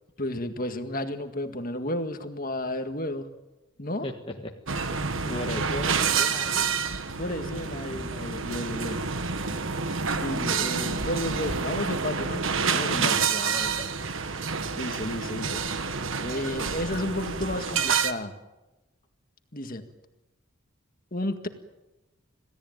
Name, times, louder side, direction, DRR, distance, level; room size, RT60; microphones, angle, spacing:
voice 1, 0.2-3.3 3.8-4.1 7.1-9.0 10.1-13.3 14.7-15.6 16.2-18.4 19.5-19.8 21.1-21.5, left 1 dB, 40° left, 7 dB, 1.9 m, -32 dB
voice 2, 4.0-4.9 5.2-6.7 13.3-13.9, left 1 dB, 25° left, 2 dB, 1.5 m, -36 dB
sound 1, 4.7-18.1, right 5 dB, 65° right, 1.5 m, -28 dB
27.0 x 17.5 x 9.2 m, 1.0 s
head